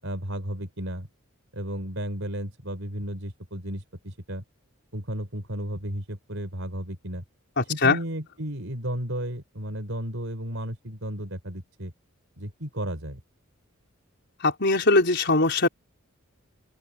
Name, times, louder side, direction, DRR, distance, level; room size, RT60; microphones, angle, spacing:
voice 1, 0.0-1.1 1.5-4.4 4.9-7.2 7.7-11.9 12.4-13.2, equal, 65° right, 5.9 m, -33 dB
voice 2, 7.6-8.0 14.4-15.7, left 3 dB, 55° left, 4.9 m, -21 dB
head